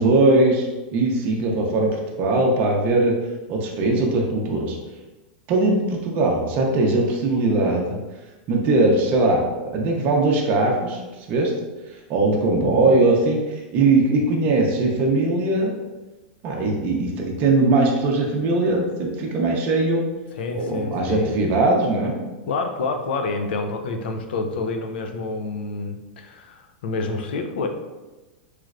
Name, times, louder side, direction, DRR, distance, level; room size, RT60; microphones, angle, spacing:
voice 1, 0.0-3.1 3.5-4.8 5.5-8.0 8.5-11.0 11.3-11.5 12.1-15.7 16.4-20.0 20.5-22.2, right 2 dB, 35° right, -1 dB, 0.6 m, -20 dB
voice 2, 12.6-13.0 20.3-21.3 22.5-27.7, left 3 dB, 75° left, 5 dB, 0.5 m, -28 dB
3.1 x 3.0 x 2.4 m, 1.2 s
supercardioid pair, 145°, 5 cm